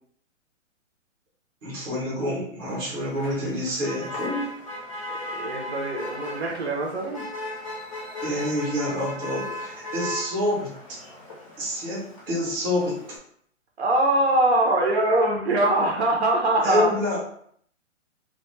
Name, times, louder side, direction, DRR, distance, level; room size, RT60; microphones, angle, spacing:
voice 1, 1.6-4.5 8.2-10.7 11.6-13.0 16.6-17.2, left 1 dB, 15° right, -6 dB, 0.7 m, -27 dB
Motor vehicle (road), 2.7-13.2, left 1 dB, 25° left, 0.5 m, -37 dB
voice 2, 5.3-7.2 13.8-16.9, right 1 dB, 55° right, 0 dB, 0.7 m, -22 dB
2.3 x 2.2 x 3.0 m, 0.63 s
hypercardioid pair, 155°, 38 cm